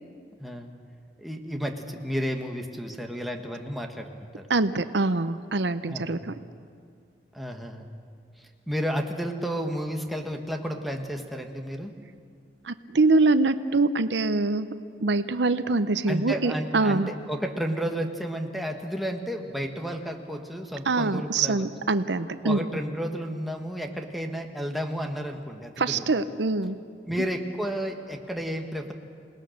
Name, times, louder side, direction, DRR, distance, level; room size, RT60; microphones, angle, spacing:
voice 1, 0.4-0.7 1.2-4.4 5.9-6.2 7.3-7.9 8.4-11.9 16.1-21.6 22.4-26.1 27.1-28.9, equal, ahead, 2 dB, 1.5 m, -32 dB
voice 2, 4.5-6.3 12.6-14.7 15.0-17.1 20.9-22.6 25.8-26.8, right 3 dB, 80° right, 12 dB, 0.8 m, -24 dB
28.0 x 19.0 x 6.6 m, 2.2 s
head